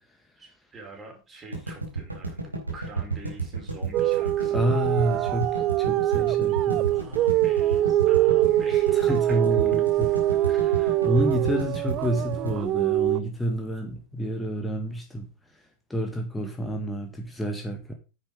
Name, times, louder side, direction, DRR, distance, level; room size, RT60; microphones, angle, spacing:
voice 1, 0.4-5.0 6.8-9.4 9.7-11.1, right 2 dB, 20° right, 5.1 m, -46 dB
sound 1, 1.5-13.7, right 4 dB, 85° right, 3.9 m, -32 dB
sound 2, 3.9-13.2, right 15 dB, 35° right, 0.6 m, -23 dB
voice 2, 4.5-6.9 8.9-10.5 11.0-15.3 15.9-17.9, equal, 5° left, 1.9 m, -29 dB
10.0 x 8.4 x 5.1 m
figure-of-eight pair, 90°, 0 cm